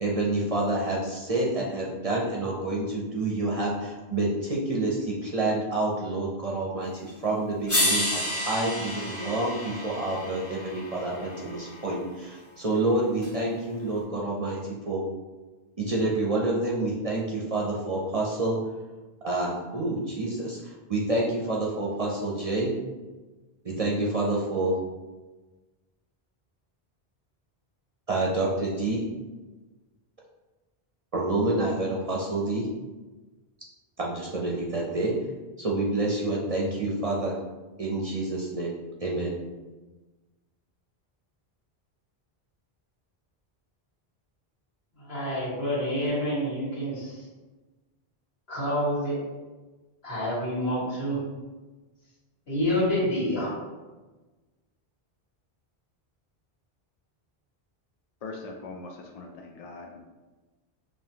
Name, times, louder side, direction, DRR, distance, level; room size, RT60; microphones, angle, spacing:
voice 1, 0.0-15.0 15.8-18.6 19.2-22.7 23.6-24.8 28.1-29.0 31.1-32.7 34.0-35.1 35.6-37.4 37.8-38.7 39.0-39.3, right 2 dB, 45° right, -3 dB, 0.5 m, -28 dB
sound 1, 7.1-7.2 7.7-11.9 13.2-13.3, left 1 dB, 15° left, 1.0 m, -30 dB
voice 2, 45.0-47.3 48.5-49.2 50.0-51.2 52.5-53.5, equal, 75° left, -7 dB, 1.7 m, -28 dB
voice 3, 58.2-60.0, left 3 dB, 55° left, 2 dB, 0.4 m, -41 dB
5.5 x 2.5 x 2.8 m, 1.2 s
omnidirectional pair, 1.0 m